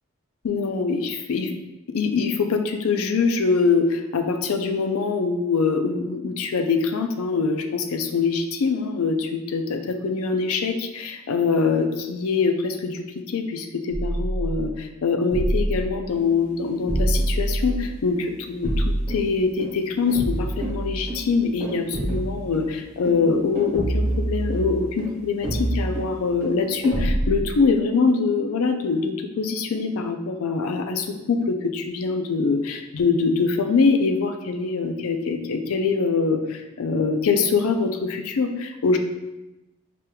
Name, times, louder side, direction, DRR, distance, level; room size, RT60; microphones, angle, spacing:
voice 1, 0.4-1.5 1.9-39.0, left 4 dB, 75° left, 6 dB, 0.4 m, -24 dB
sound 1, 13.9-14.7 15.3-15.9 16.9-17.9 18.6-19.2 20.1-21.2 21.9-22.5 23.7-24.9 25.4-26.1 26.9-27.5, right 1 dB, 30° left, 0.8 m, -25 dB
sound 2, 16.1-27.0, right 1 dB, 20° right, 1.2 m, -36 dB
4.9 x 3.0 x 2.2 m, 1.0 s
head